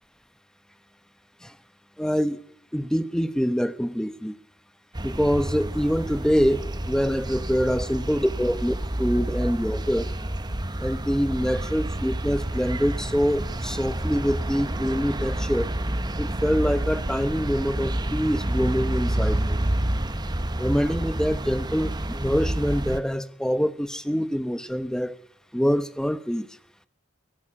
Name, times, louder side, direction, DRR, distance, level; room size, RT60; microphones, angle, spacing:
voice 1, 2.0-2.4 2.7-4.4 5.0-10.1 10.8-15.7 16.2-19.6 20.6-25.2 25.5-26.5, equal, 5° left, 13 dB, 0.9 m, -25 dB
sound 1, 4.9-23.0, right 1 dB, 20° right, 1.0 m, -29 dB
22.5 x 17.0 x 8.6 m, 0.70 s
head